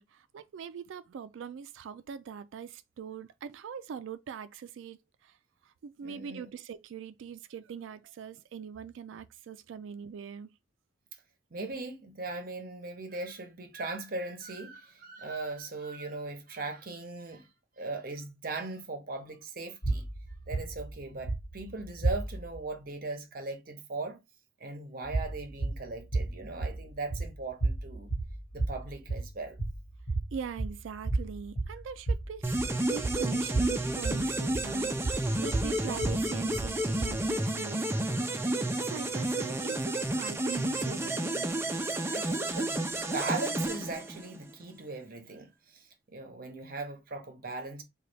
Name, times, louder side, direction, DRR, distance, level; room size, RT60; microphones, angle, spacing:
voice 1, 0.0-5.4 5.6-10.5 30.3-32.5 32.9-38.2 38.4-41.5, right 7 dB, 85° right, 0.3 m, -42 dB
voice 2, 6.0-6.5 11.5-17.5 17.8-20.1 20.5-24.2 24.6-28.1 28.5-29.6 41.8-47.8, right 3 dB, 50° right, 0.7 m, -39 dB
sound 1, 19.8-22.6 25.0-37.4, right 2 dB, 55° left, 1.3 m, -34 dB
sound 2, 32.4-44.5, right 1 dB, 15° right, 0.4 m, -31 dB
3.9 x 2.3 x 3.3 m
head